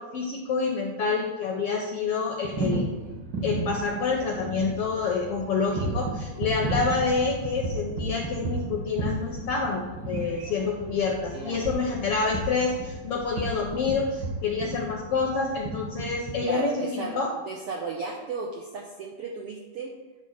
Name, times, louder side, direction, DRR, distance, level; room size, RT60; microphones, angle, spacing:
voice 1, 0.0-3.0 3.4-17.3, left 4 dB, 75° left, 1 dB, 1.4 m, -28 dB
sound 1, 2.4-16.5, right 2 dB, 55° right, 1.2 m, -34 dB
voice 2, 11.3-11.7 16.4-20.0, right 4 dB, 80° right, 0 dB, 1.3 m, -35 dB
9.7 x 3.6 x 6.4 m, 1.2 s
omnidirectional pair, 3.6 m